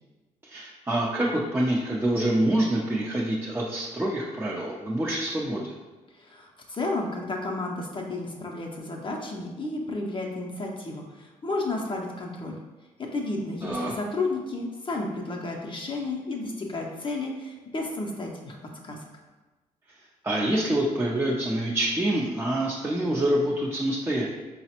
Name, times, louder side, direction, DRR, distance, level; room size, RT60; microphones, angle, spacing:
voice 1, 0.4-5.8 13.6-13.9 20.2-24.3, right 1 dB, 15° right, -4 dB, 0.5 m, -26 dB
voice 2, 6.1-12.6 13.0-18.6 18.8-19.0, left 2 dB, 35° left, 0 dB, 0.5 m, -32 dB
4.0 x 2.0 x 2.8 m, 1.2 s
supercardioid pair, 55°, 16 cm